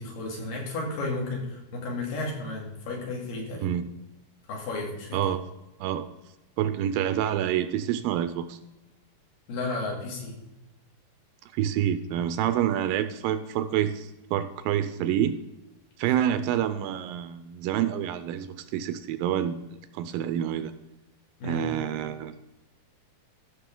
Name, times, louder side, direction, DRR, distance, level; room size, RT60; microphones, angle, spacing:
voice 1, 0.0-3.7 4.5-5.2 9.5-10.4 21.4-21.7, left 2 dB, 70° left, -1 dB, 3.8 m, -33 dB
voice 2, 5.1-5.4 5.8-6.1 6.6-8.6 11.5-15.4 16.0-19.7 19.9-20.7 21.4-22.4, right 10 dB, 80° right, 11 dB, 2.2 m, -27 dB
14.5 x 6.7 x 3.8 m, 1.0 s
omnidirectional pair, 4.3 m